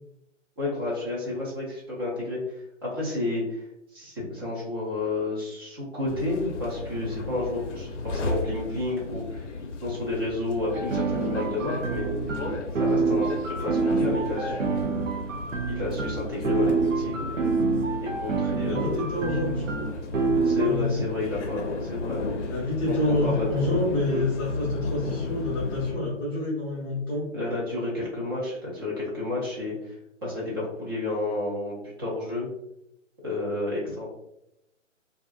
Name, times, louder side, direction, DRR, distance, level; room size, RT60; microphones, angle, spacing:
voice 1, 0.6-2.4 2.8-3.7 3.9-9.5 9.8-12.2 12.8-13.3 13.6-14.9 15.7-17.5 18.0-19.0 20.4-22.2 22.9-23.0 23.2-23.8 24.1-24.2 27.3-30.0 30.2-32.5 33.2-34.1, left 2 dB, 20° right, -5 dB, 0.5 m, -31 dB
sound 1, 6.1-25.9, left 3 dB, 65° left, 0.6 m, -35 dB
sound 2, 10.7-20.7, right 4 dB, 80° right, 0.6 m, -27 dB
voice 2, 18.5-19.9 20.6-20.9 22.4-27.2, left 2 dB, 20° left, -10 dB, 0.7 m, -28 dB
2.5 x 2.4 x 2.3 m, 0.81 s
figure-of-eight pair, 135°, 38 cm